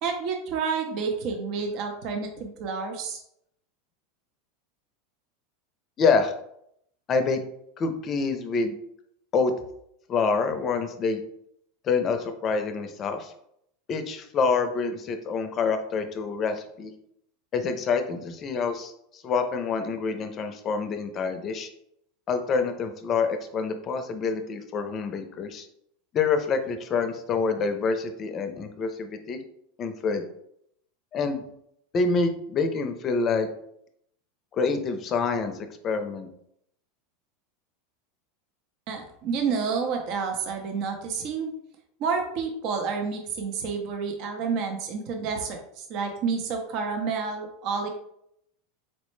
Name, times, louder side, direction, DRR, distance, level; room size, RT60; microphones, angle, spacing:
voice 1, 0.0-3.2 38.9-41.5 42.0-47.9, right 5 dB, 55° right, 3 dB, 0.6 m, -29 dB
voice 2, 6.0-6.3 7.1-7.4 7.8-8.7 9.3-9.5 10.1-11.2 11.8-13.3 13.9-16.9 17.5-21.7 22.3-25.7 26.1-29.4 29.8-30.2 31.1-31.4 31.9-33.5 34.5-35.6 35.8-36.3, left 4 dB, 35° left, 7 dB, 0.5 m, -26 dB
4.2 x 2.0 x 3.1 m, 0.73 s
supercardioid pair, 115°, 0 cm